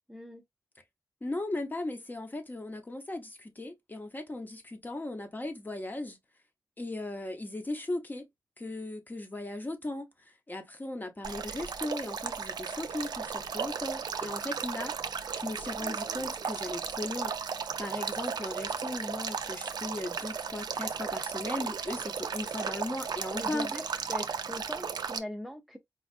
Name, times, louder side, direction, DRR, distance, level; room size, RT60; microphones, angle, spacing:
voice 1, 0.1-0.4 23.3-25.8, left 1 dB, ahead, 0.5 m, -41 dB
voice 2, 1.2-6.2 6.8-8.3 8.6-14.9 15.3-23.7, left 2 dB, 25° left, 0.8 m, -37 dB
Male speech man speaking / Stream / Trickle dribble, 11.2-25.2, right 6 dB, 90° right, 0.4 m, -35 dB
4.3 x 2.3 x 2.3 m
wide cardioid pair, 130°, 7 cm